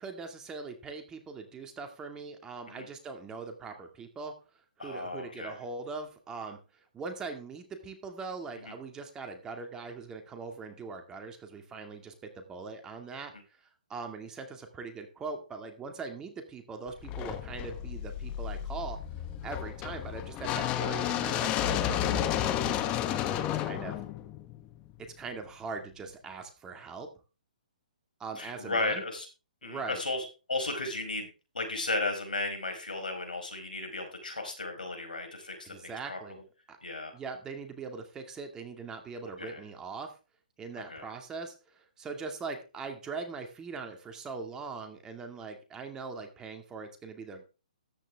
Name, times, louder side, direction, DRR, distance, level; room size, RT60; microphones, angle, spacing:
voice 1, 0.0-4.3 4.8-6.6 6.9-13.3 13.9-19.0 19.4-24.0 25.0-27.1 28.2-29.0 29.6-30.0 35.6-36.4 36.7-36.8 37.1-40.1 40.6-47.5, right 4 dB, 15° right, 5 dB, 2.2 m, -41 dB
voice 2, 4.8-5.6 8.6-8.7 28.4-29.3 29.6-31.3 31.5-36.4 36.8-37.1 39.4-39.6 40.8-41.1, left 2 dB, 85° left, 4 dB, 4.7 m, -35 dB
sound 1, 17.0-25.1, left 11 dB, 25° left, 1.2 m, -32 dB
13.5 x 9.9 x 3.6 m, 0.33 s
hypercardioid pair, 140°, 5 cm